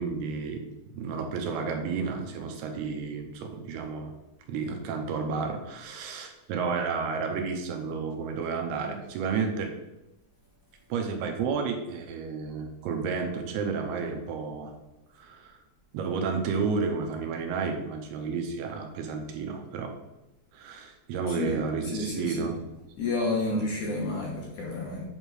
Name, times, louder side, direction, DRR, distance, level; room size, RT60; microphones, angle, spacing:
voice 1, 0.0-4.1 4.5-9.7 10.9-14.7 15.1-15.6 15.9-19.9 20.5-22.5 23.5-23.7, right 5 dB, 75° right, 3 dB, 2.7 m, -31 dB
voice 2, 21.3-22.5 23.0-25.0, left 2 dB, 60° left, -3 dB, 2.3 m, -30 dB
8.1 x 3.6 x 6.2 m, 0.95 s
omnidirectional pair, 4.8 m